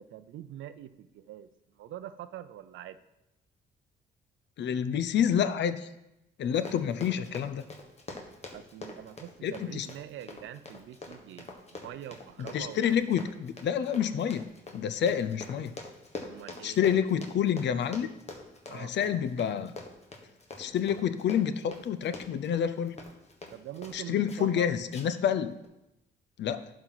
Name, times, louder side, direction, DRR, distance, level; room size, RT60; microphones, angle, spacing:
voice 1, 0.0-1.5 1.7-3.0 6.8-6.9 8.5-12.8 16.2-16.8 18.7-19.0 23.5-24.7, right 11 dB, 75° right, 12 dB, 0.5 m, -44 dB
voice 2, 4.6-5.9 6.4-7.6 9.4-9.9 12.4-15.8 16.6-18.1 18.7-19.7 20.6-23.0 23.9-25.5 26.4-26.6, left 8 dB, 65° left, 12 dB, 0.6 m, -28 dB
Run, 6.4-24.0 24.3-24.6 24.9-25.3 25.6-25.7, left 3 dB, 35° left, 1.4 m, -45 dB
11.5 x 4.4 x 4.0 m, 0.90 s
cardioid pair, 90°, 20 cm